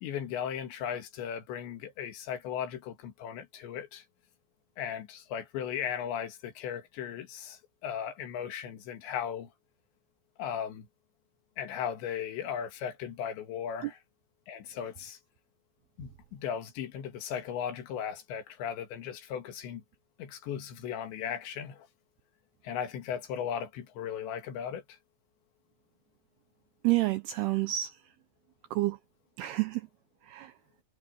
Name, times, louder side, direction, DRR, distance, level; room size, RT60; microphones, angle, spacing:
voice 1, 0.0-4.0 4.8-9.5 10.4-10.9 11.6-14.0 14.5-15.2 16.0-19.8 20.2-21.9 22.6-25.0, left 8 dB, 70° left, 4.1 m, -37 dB
voice 2, 26.8-27.9 28.7-29.0 29.4-29.8 30.3-30.5, right 17 dB, 85° right, 2.4 m, -28 dB
omnidirectional pair, 5.5 m